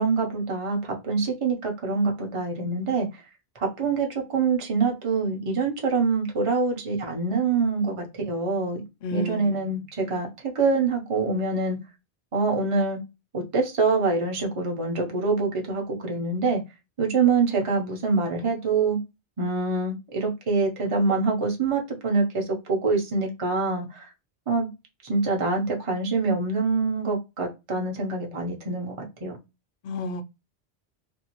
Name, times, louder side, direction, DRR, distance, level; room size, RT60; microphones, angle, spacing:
voice 1, 0.0-3.1 3.6-8.8 9.1-11.8 12.3-13.0 13.3-16.6 17.0-19.0 19.4-24.1 24.5-24.7 25.0-29.0 29.2-29.4, right 4 dB, 35° right, 0.7 m, -25 dB
voice 2, 9.0-9.8 29.8-30.2, left 1 dB, 60° left, 0.7 m, -32 dB
2.6 x 2.3 x 2.9 m
omnidirectional pair, 1.1 m